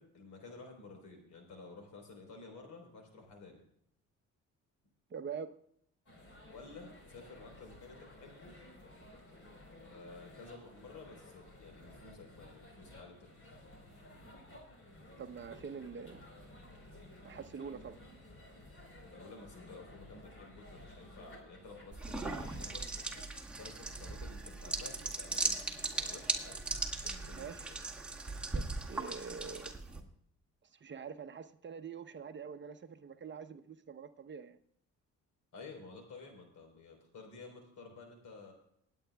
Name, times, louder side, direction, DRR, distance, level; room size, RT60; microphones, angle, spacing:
voice 1, 0.0-3.6 6.5-8.5 9.9-13.6 19.2-22.8 23.6-26.6 27.0-27.8 35.5-38.5, left 3 dB, 75° left, 3 dB, 4.1 m, -52 dB
voice 2, 5.1-5.5 15.2-16.3 17.2-18.0 27.3-27.7 28.5-29.7 30.7-34.6, right 6 dB, 40° right, 9 dB, 0.8 m, -45 dB
sound 1, 6.1-23.4, left 1 dB, 45° left, 4.2 m, -55 dB
sound 2, 21.9-30.0, right 3 dB, 5° right, 2.0 m, -38 dB
27.0 x 9.0 x 2.3 m, 0.71 s
cardioid pair, 90°, 30 cm